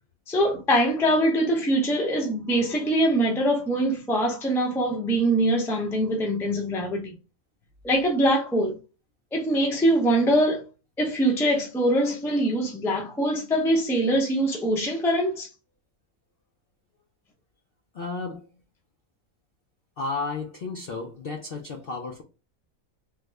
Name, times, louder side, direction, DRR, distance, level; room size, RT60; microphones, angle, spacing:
voice 1, 0.3-7.1 7.8-8.8 9.3-10.6 11.0-15.5, right 1 dB, 5° left, 0.4 m, -23 dB
voice 2, 17.9-18.5 20.0-22.2, left 3 dB, 60° left, 0.6 m, -33 dB
3.5 x 2.1 x 3.3 m
omnidirectional pair, 1.5 m